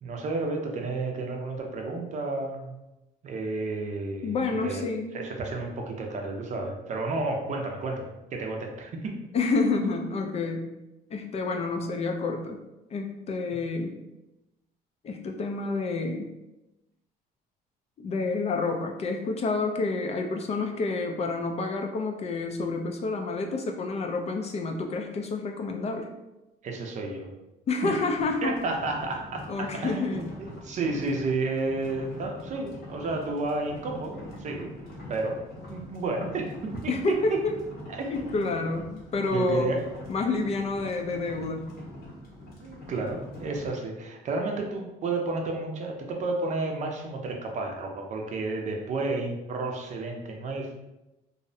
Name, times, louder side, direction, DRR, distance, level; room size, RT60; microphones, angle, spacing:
voice 1, 0.0-2.7 3.2-4.8 5.1-8.0 8.3-9.2 26.6-27.3 27.8-27.9 28.4-34.7 35.1-35.4 35.7-36.9 37.9-38.3 39.3-39.8 42.6-50.7, right 3 dB, 45° right, 2 dB, 0.5 m, -31 dB
voice 2, 4.2-5.2 9.3-10.7 11.1-12.6 12.9-14.0 15.0-16.3 18.0-26.1 27.7-28.5 29.5-30.3 36.9-37.6 38.1-39.7 40.1-41.7, left 3 dB, 40° left, 3 dB, 0.3 m, -29 dB
sound 1, 28.1-43.7, left 1 dB, 65° left, 0.7 m, -44 dB
2.6 x 2.0 x 2.6 m, 0.97 s
cardioid pair, 110°, 17 cm